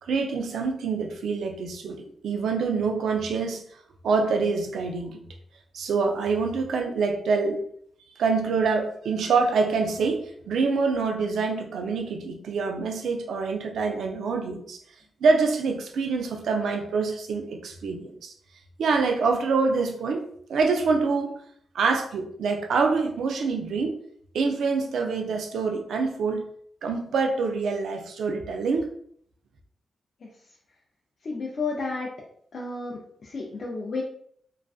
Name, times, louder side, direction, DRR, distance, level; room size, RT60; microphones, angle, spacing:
voice 1, 0.0-3.6 4.0-5.2 5.7-7.7 8.2-14.8 15.2-18.3 18.8-20.2 20.5-21.4 21.7-24.0 24.3-26.4 26.8-28.9, right 4 dB, 80° right, 4 dB, 0.4 m, -25 dB
voice 2, 31.2-32.1 32.5-34.0, left 3 dB, 60° left, -3 dB, 0.4 m, -32 dB
2.4 x 2.2 x 2.3 m, 0.64 s
cardioid pair, 60°, 0 cm